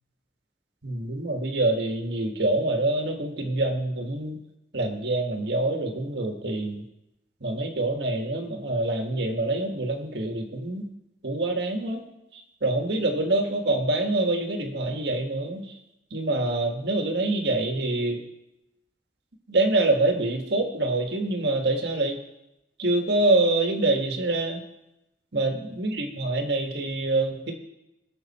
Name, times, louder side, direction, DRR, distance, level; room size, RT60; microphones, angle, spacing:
voice 1, 0.8-4.4 4.7-6.8 7.4-10.9 11.2-12.0 12.6-15.6 16.1-18.2 19.5-22.2 22.8-24.6 25.3-27.5, right 2 dB, 70° right, 3 dB, 1.7 m, -25 dB
20.0 x 6.7 x 4.3 m, 0.91 s
head